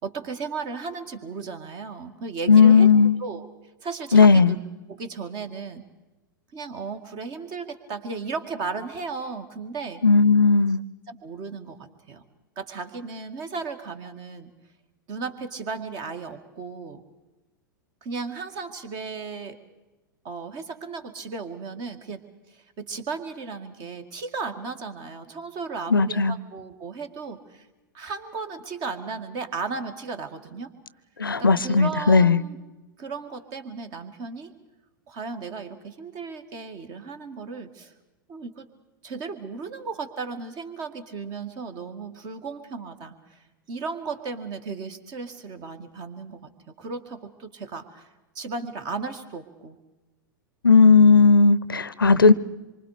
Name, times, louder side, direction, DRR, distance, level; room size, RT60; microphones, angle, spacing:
voice 1, 0.0-2.9 3.2-3.4 3.8-4.6 4.9-5.8 6.5-10.0 11.1-12.2 12.6-14.5 15.1-17.0 18.0-19.6 20.2-22.2 22.5-27.7 27.9-30.7 31.4-32.6 33.0-34.5 35.1-37.9 38.3-38.7 39.0-48.1 48.3-49.8, right 4 dB, 40° right, 8 dB, 2.1 m, -35 dB
voice 2, 2.5-3.2 4.1-4.5 10.0-10.8 25.9-26.4 31.2-32.4 50.6-52.3, left 5 dB, 85° left, 19 dB, 0.7 m, -16 dB
26.5 x 24.0 x 5.0 m, 1.1 s
figure-of-eight pair, 95°, 11 cm